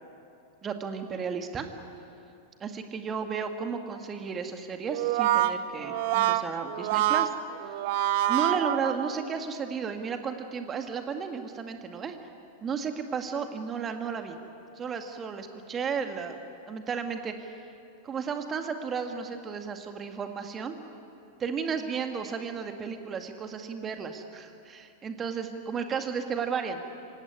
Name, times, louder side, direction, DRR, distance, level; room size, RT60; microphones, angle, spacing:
voice 1, 0.6-1.7 2.6-7.3 8.3-12.2 12.6-14.4 14.8-16.4 16.7-17.5 18.0-20.8 21.4-26.8, right 6 dB, 25° right, 6 dB, 2.1 m, -33 dB
Brass instrument, 4.9-9.4, right 13 dB, 50° right, 0.9 m, -26 dB
25.0 x 17.5 x 9.7 m, 2.6 s
figure-of-eight pair, 90°, 0 cm